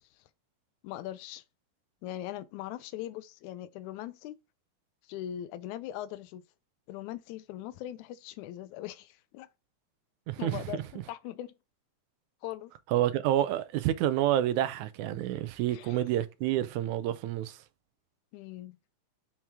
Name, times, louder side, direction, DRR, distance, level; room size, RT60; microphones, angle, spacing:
voice 1, 0.8-1.4 2.0-4.4 5.1-6.4 6.9-9.5 10.4-11.5 12.4-12.7 15.7-16.0 18.3-18.8, left 12 dB, 85° left, 2.0 m, -40 dB
voice 2, 10.3-10.8 12.9-17.6, right 12 dB, 85° right, 2.1 m, -28 dB
6.0 x 4.4 x 3.5 m
omnidirectional pair, 3.3 m